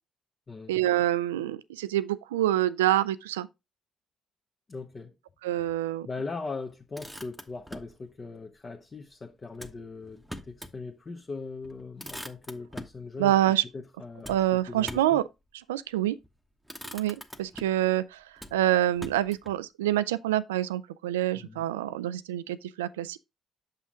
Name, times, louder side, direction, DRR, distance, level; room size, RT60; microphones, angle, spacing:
voice 1, 0.7-3.5 5.4-6.1 13.2-13.6 14.3-15.2 15.7-16.2 16.9-18.2 18.5-23.2, right 13 dB, 80° right, 0.3 m, -26 dB
voice 2, 4.7-5.1 6.0-13.3 13.7-15.2 21.3-21.6, left 3 dB, 35° left, 1.0 m, -40 dB
Motor vehicle (road), 6.7-8.0 9.5-10.8 11.2-11.3 11.6-13.0 14.2-15.2 16.1-16.3 16.6-17.9 18.4-19.6, equal, ahead, 1.1 m, -43 dB
7.3 x 5.7 x 3.6 m
hypercardioid pair, 45°, 0 cm